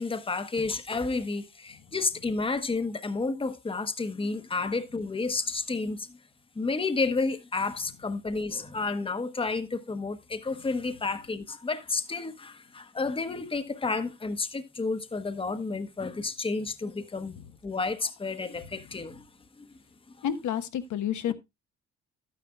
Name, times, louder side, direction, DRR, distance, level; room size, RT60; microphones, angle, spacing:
voice 1, 0.0-6.2 6.5-17.3 17.6-19.3 19.6-19.7 21.3-21.4, left 3 dB, 20° left, 1.0 m, -31 dB
voice 2, 20.2-21.3, left 9 dB, 75° left, 1.1 m, -29 dB
11.5 x 9.5 x 2.3 m
cardioid pair, 90°, 30 cm